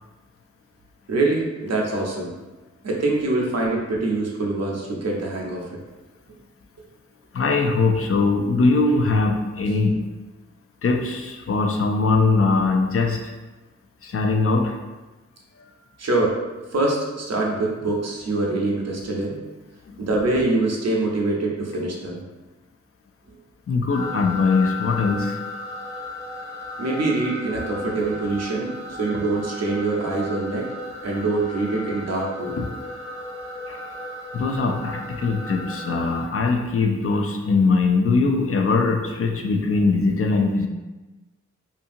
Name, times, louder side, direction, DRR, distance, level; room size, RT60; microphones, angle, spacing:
voice 1, 1.1-2.3 2.8-5.8 16.0-16.4 16.7-19.4 20.0-22.2 26.8-30.7 31.0-32.6, right 2 dB, 60° right, -2 dB, 0.6 m, -24 dB
voice 2, 7.3-10.0 10.8-13.3 14.0-14.8 19.9-20.0 23.7-25.4 32.6-32.7 33.7-33.8 34.3-40.7, left 3 dB, 50° left, 3 dB, 0.4 m, -21 dB
sound 1, 23.9-36.2, left 2 dB, 35° left, 1.3 m, -35 dB
2.8 x 2.5 x 2.5 m, 1.1 s
wide cardioid pair, 60°, 29 cm